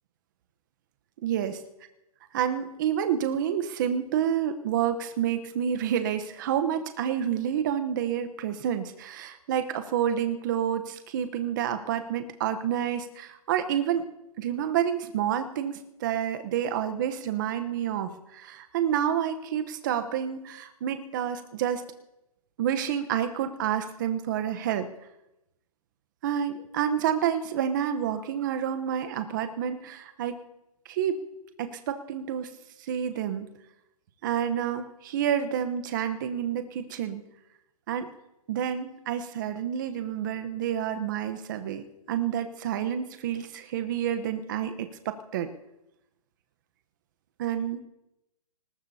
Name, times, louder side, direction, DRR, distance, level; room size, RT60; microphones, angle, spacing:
voice 1, 1.2-1.6 2.3-14.1 14.4-21.8 22.6-24.9 26.2-30.4 30.9-31.2 31.6-32.5 32.8-33.5 34.2-37.2 37.9-38.1 38.5-45.5 47.4-47.8, right 9 dB, 30° right, 9 dB, 0.9 m, -29 dB
24.0 x 19.5 x 2.8 m, 0.91 s
hypercardioid pair, 160°, 20 cm